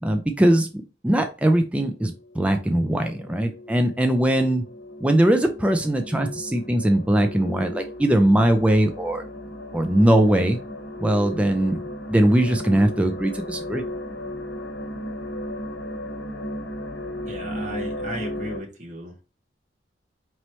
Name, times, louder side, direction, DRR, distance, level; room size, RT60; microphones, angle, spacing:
voice 1, 0.0-4.6 5.0-9.2 9.7-10.6 11.0-11.8 12.1-13.8, right 1 dB, 5° right, 5 dB, 0.4 m, -20 dB
sound 1, 1.9-18.6, left 1 dB, 70° left, 1.0 m, -35 dB
voice 2, 17.3-19.1, right 1 dB, 45° right, 0 dB, 1.0 m, -35 dB
4.2 x 3.0 x 3.0 m, 0.32 s
head